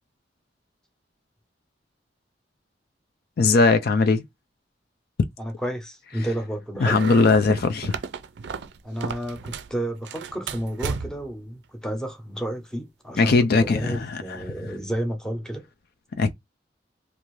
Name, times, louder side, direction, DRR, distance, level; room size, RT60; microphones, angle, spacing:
voice 1, 3.4-4.2 6.8-8.0 13.2-14.4 16.2-16.3, left 3 dB, 60° left, 0.4 m, -20 dB
voice 2, 5.4-7.0 8.8-15.7, right 1 dB, 5° left, 0.7 m, -31 dB
Small group of people leaving a room, 6.9-9.7 10.0-11.3, right 5 dB, 65° right, 0.4 m, -34 dB
2.6 x 2.4 x 3.1 m
head